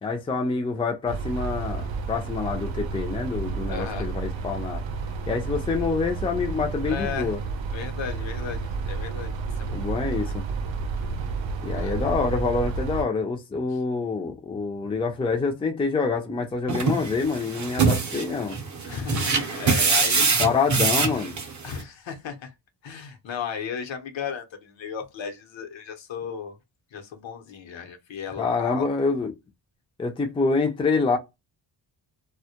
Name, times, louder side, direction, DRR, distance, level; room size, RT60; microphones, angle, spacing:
voice 1, 0.0-4.8 5.3-7.4 9.7-10.5 11.6-18.6 20.2-21.4 28.4-29.3 30.0-31.2, left 4 dB, 15° left, 0.4 m, -26 dB
sound 1, 1.1-13.0, right 4 dB, 80° right, 0.6 m, -31 dB
voice 2, 3.7-4.1 6.9-7.4 7.7-10.3 11.7-12.0 18.9-20.3 21.6-22.5 22.8-26.6 26.9-28.9, left 7 dB, 75° left, 0.8 m, -35 dB
sound 2, 16.7-21.8, right 5 dB, 40° right, 0.6 m, -24 dB
2.2 x 2.1 x 2.8 m
wide cardioid pair, 125°, 45 cm